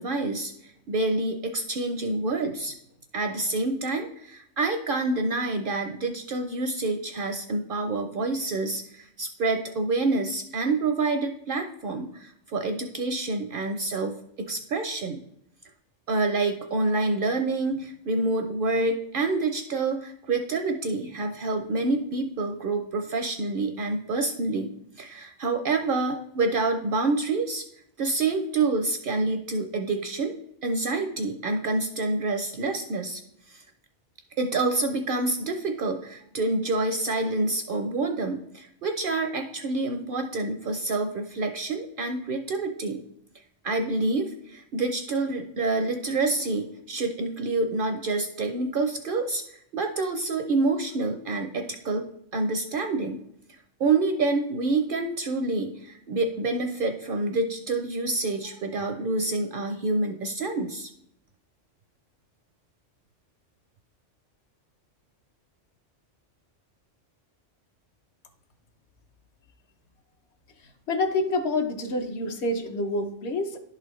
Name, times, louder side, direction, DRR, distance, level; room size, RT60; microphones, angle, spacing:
voice 1, 0.0-2.7 3.1-15.2 16.1-27.6 28.0-30.3 30.6-33.2 33.5-33.6 34.4-43.0 43.6-49.4 49.7-52.1 52.3-53.2 53.8-60.9, right 3 dB, 60° right, 6 dB, 0.6 m, -27 dB
voice 2, 70.9-73.6, left 2 dB, 65° left, 6 dB, 1.0 m, -27 dB
11.0 x 4.1 x 3.1 m, 0.76 s
omnidirectional pair, 1.3 m